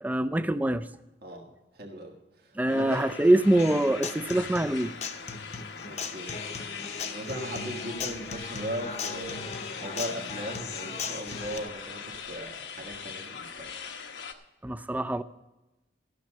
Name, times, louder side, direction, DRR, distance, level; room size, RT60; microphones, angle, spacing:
voice 1, 0.0-0.9 2.5-4.9 14.6-15.2, right 1 dB, 10° right, 0.4 m, -24 dB
voice 2, 1.7-3.1 5.9-6.3 7.1-13.7, right 1 dB, 60° right, 1.6 m, -38 dB
sound 1, 2.7-14.3, left 6 dB, 80° left, 1.0 m, -41 dB
Human voice / Acoustic guitar, 3.6-11.6, left 4 dB, 40° left, 0.8 m, -38 dB
13.5 x 6.3 x 7.4 m
head